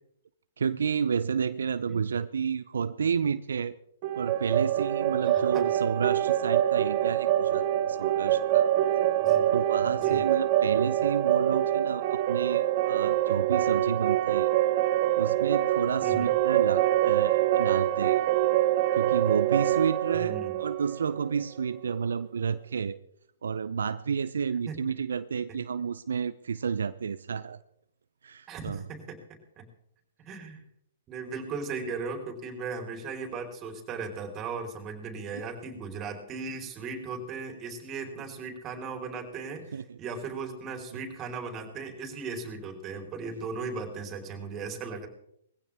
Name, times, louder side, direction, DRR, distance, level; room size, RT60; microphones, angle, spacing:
voice 1, 0.6-3.8 4.2-8.7 9.5-14.5 15.2-18.2 18.9-23.0 23.4-27.6 28.2-28.8 35.3-35.4 39.7-40.0, right 6 dB, 75° right, 14 dB, 0.6 m, -31 dB
sound 1, 4.0-21.8, right 12 dB, 45° right, 0.9 m, -25 dB
voice 2, 5.2-5.7 9.2-9.5 9.9-10.2 16.0-16.3 20.1-20.6 24.7-24.8 28.5-29.2 29.6-29.7 30.2-30.6 31.1-45.1, right 4 dB, 25° right, 4 dB, 4.3 m, -37 dB
20.5 x 15.5 x 3.6 m, 0.74 s
hypercardioid pair, 120°, 0 cm